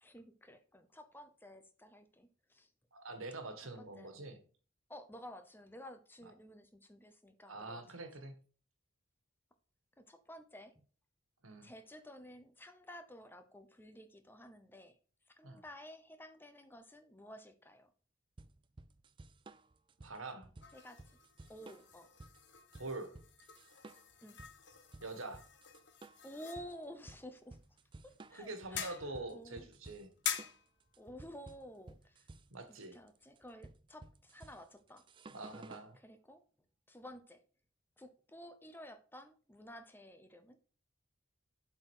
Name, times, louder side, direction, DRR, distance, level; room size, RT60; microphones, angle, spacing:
voice 1, 0.0-2.7 3.8-4.2 4.9-7.8 10.0-10.8 11.6-14.9 15.4-17.9 20.7-21.0 21.5-22.1 24.2-24.4 26.2-27.6 28.0-29.0 29.3-29.7 31.0-32.3 32.9-35.0 36.0-36.4 36.9-37.4 38.0-40.6, equal, 10° left, 9 dB, 0.8 m, -52 dB
voice 2, 2.9-4.4 6.2-6.3 7.5-8.4 11.4-11.7 15.4-15.6 20.0-20.5 22.8-23.1 25.0-25.4 28.3-30.1 32.5-33.0 35.3-36.0, right 2 dB, 85° right, 7 dB, 1.7 m, -45 dB
sound 1, 18.4-35.9, right 2 dB, 25° right, 0.3 m, -55 dB
sound 2, 20.6-33.7, left 9 dB, 55° left, 1.1 m, -48 dB
7.7 x 4.5 x 6.4 m, 0.39 s
head